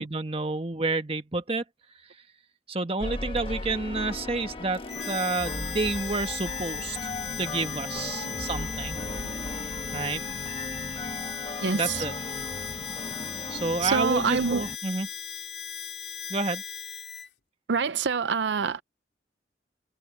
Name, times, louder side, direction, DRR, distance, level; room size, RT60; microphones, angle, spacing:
voice 1, 0.0-1.6 2.7-4.8 5.1-7.1 7.4-9.0 9.9-10.2 11.7-12.1 13.5-15.1 16.3-16.6, right 3 dB, 30° right, 1.3 m, -29 dB
sound 1, 3.0-14.8, left 2 dB, 30° left, 1.3 m, -36 dB
Harmonica, 4.9-17.3, left 7 dB, 65° left, 3.2 m, -37 dB
voice 2, 11.6-12.0 13.8-14.6 17.7-18.8, right 5 dB, 75° right, 0.5 m, -26 dB
head